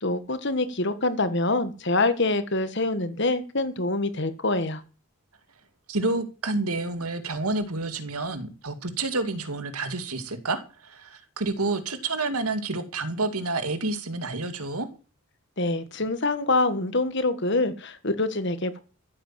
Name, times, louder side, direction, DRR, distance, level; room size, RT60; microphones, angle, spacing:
voice 1, 0.0-4.8 15.6-18.8, left 2 dB, 50° left, 1.7 m, -25 dB
voice 2, 5.9-14.9, right 2 dB, 85° right, 2.3 m, -29 dB
14.5 x 8.4 x 7.6 m
head